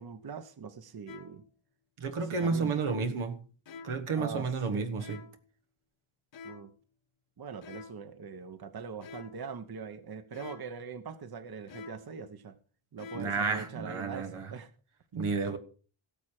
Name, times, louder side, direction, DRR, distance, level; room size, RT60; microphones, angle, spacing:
voice 1, 0.0-1.4 2.1-3.1 4.1-4.9 6.4-6.7 7.4-12.6 12.9-14.7, right 5 dB, 50° right, 1.0 m, -42 dB
sound 1, 1.1-1.5 2.3-2.8 3.7-4.1 5.0-5.5 6.3-6.8 7.6-8.1 9.0-9.5 10.3-10.8 11.7-12.2 13.0-13.5, left 5 dB, 65° left, 1.3 m, -48 dB
voice 2, 2.0-3.3 3.8-5.2 13.1-14.5 15.1-15.6, right 4 dB, 90° right, 1.5 m, -31 dB
17.0 x 7.4 x 4.8 m
wide cardioid pair, 115°, 48 cm